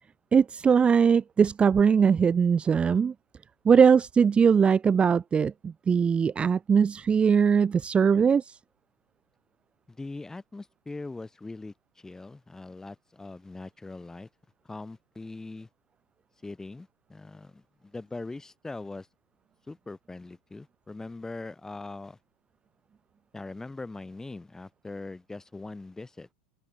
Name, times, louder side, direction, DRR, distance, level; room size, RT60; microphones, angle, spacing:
voice 1, 0.3-3.1 3.7-8.5, right 6 dB, 20° right, 0.6 m, -21 dB
voice 2, 9.9-14.3 14.6-15.7 16.4-19.1 19.7-22.2 23.3-26.3, left 3 dB, 10° left, 7.2 m, -41 dB
open air
hypercardioid pair, 95°, 5 cm